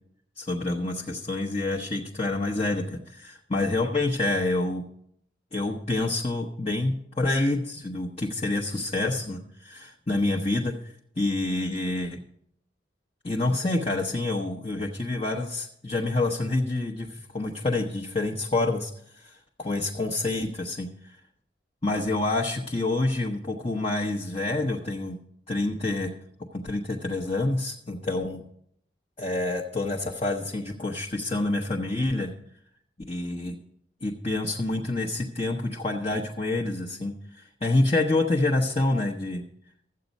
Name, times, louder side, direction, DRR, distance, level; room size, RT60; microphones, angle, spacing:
voice 1, 0.4-4.8 5.5-12.2 13.2-21.2 21.8-25.2 25.5-26.1 26.5-28.4 29.2-32.3 33.1-33.6 34.0-39.5, left 2 dB, 30° left, 0 dB, 0.9 m, -27 dB
13.5 x 8.1 x 5.3 m, 0.70 s
head